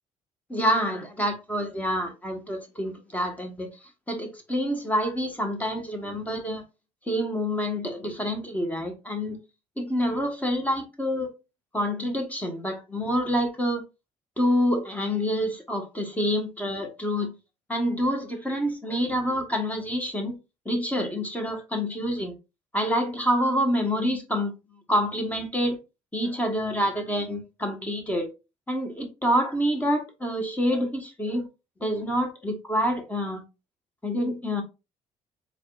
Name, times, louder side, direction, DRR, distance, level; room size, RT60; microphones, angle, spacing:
voice 1, 0.5-3.7 4.1-6.6 7.1-9.3 9.8-11.3 11.7-13.8 14.4-17.3 17.7-20.3 20.6-22.3 22.7-24.5 24.9-25.8 26.1-28.3 28.7-31.5 31.8-33.4 34.0-34.6, equal, 10° left, 1.4 m, -27 dB
4.6 x 3.6 x 2.5 m
supercardioid pair, 85°, 13 cm